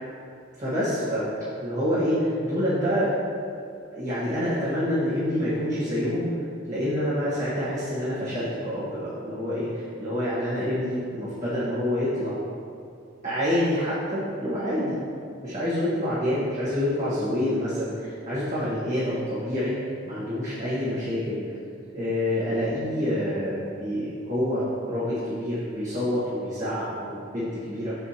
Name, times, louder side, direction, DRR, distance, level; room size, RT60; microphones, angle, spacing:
voice 1, 0.6-1.3 1.6-3.1 3.9-6.3 6.7-12.4 13.2-15.0 15.4-19.8 20.1-21.4 21.9-28.0, equal, 40° right, -11 dB, 1.5 m, -27 dB
7.1 x 6.6 x 2.9 m, 2.4 s
head